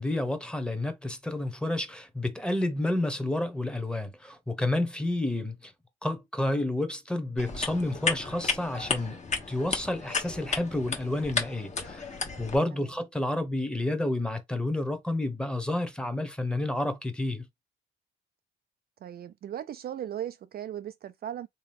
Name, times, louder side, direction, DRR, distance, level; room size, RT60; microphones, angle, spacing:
voice 1, 0.0-5.7 6.0-9.2 9.5-17.5, left 1 dB, 5° left, 1.0 m, -30 dB
sound 1, 7.4-12.6, left 4 dB, 35° left, 1.1 m, -33 dB
voice 2, 19.0-21.5, right 10 dB, 50° right, 0.4 m, -37 dB
3.5 x 2.9 x 3.4 m
cardioid pair, 90°, 20 cm